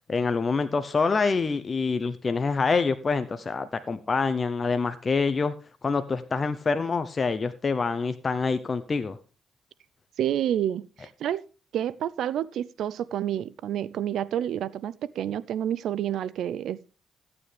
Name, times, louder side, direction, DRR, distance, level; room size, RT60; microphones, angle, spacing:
voice 1, 0.1-5.5 5.8-9.2, left 4 dB, 35° left, 0.7 m, -26 dB
voice 2, 10.2-11.4 11.7-16.9, right 10 dB, 75° right, 0.5 m, -29 dB
15.0 x 8.9 x 3.3 m
cardioid pair, 90°, 0 cm